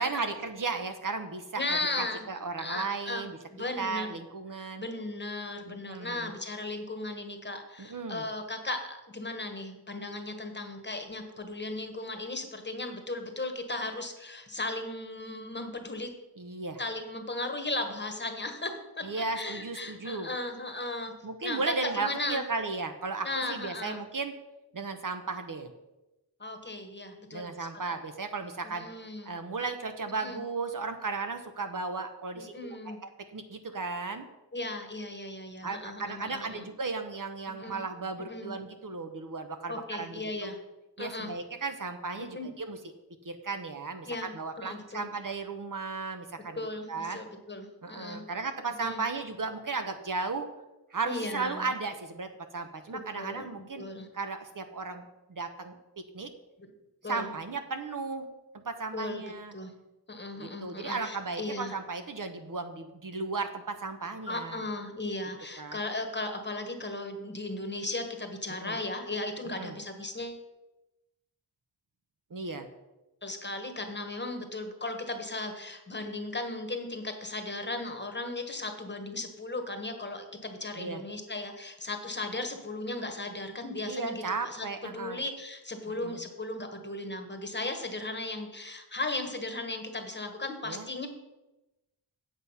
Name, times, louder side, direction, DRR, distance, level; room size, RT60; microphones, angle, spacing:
voice 1, 0.0-3.4 3.8-4.9 5.7-6.3 7.8-8.2 16.4-16.8 19.0-20.3 21.2-24.3 24.7-25.7 27.3-28.9 29.2-34.2 35.6-40.5 41.0-42.8 43.2-46.6 46.9-47.2 47.8-50.5 50.9-53.9 54.1-55.8 56.1-56.3 57.0-58.3 58.5-59.5 60.3-64.6 65.6-65.8 68.6-68.8 69.5-69.8 72.3-72.7 80.7-81.0 83.8-85.2 85.9-86.2 90.6-90.9, right 4 dB, 50° right, 7 dB, 0.9 m, -35 dB
voice 2, 1.6-2.2 2.6-3.2 3.5-4.1 4.5-16.1 16.8-19.0 19.3-21.1 21.4-22.4 23.2-24.0 26.4-27.7 28.8-29.3 30.2-30.4 32.5-33.0 34.5-36.7 37.6-37.8 38.3-38.5 39.7-40.6 41.0-41.3 42.3-42.5 44.1-44.3 44.6-45.0 46.6-48.2 48.8-49.0 51.0-51.7 52.9-53.5 53.8-54.1 56.6-56.7 57.0-57.3 58.9-59.2 59.5-59.7 60.1-61.8 64.3-70.4 73.2-91.1, left 2 dB, 25° left, 5 dB, 1.3 m, -36 dB
7.9 x 7.9 x 5.6 m, 1.0 s
wide cardioid pair, 115°, 42 cm